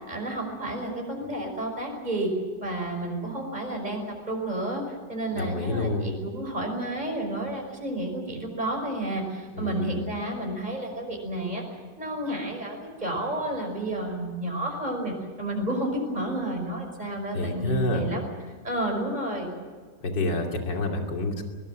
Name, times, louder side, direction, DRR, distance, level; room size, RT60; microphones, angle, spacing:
voice 1, 0.1-2.3 2.6-4.8 5.1-11.6 12.0-18.2 18.6-19.5, right 1 dB, 25° right, 2 dB, 5.6 m, -31 dB
voice 2, 5.3-6.1 9.6-10.0 17.3-18.1 20.0-21.4, left 2 dB, 85° left, 2 dB, 3.5 m, -28 dB
22.0 x 21.0 x 7.7 m, 1.5 s
omnidirectional pair, 1.9 m